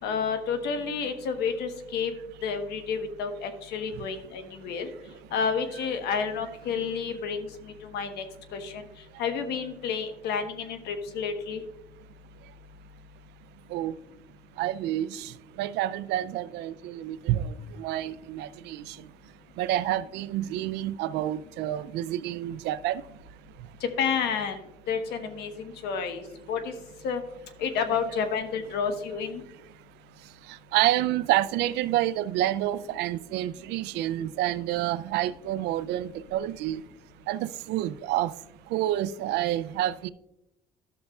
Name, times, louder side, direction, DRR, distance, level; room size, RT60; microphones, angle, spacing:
voice 1, 0.0-2.1 2.4-4.9 5.3-8.2 8.5-8.8 9.2-11.6 23.8-24.6 24.9-26.7 27.0-27.2 27.6-29.4, left 6 dB, 80° left, 1.2 m, -30 dB
voice 2, 14.6-15.3 15.6-17.5 17.8-18.8 19.6-23.0 29.1-29.2 30.7-36.8 37.3-38.3 38.7-40.1, right 13 dB, 85° right, 0.4 m, -28 dB
12.5 x 6.6 x 2.3 m
cardioid pair, 110°, 17 cm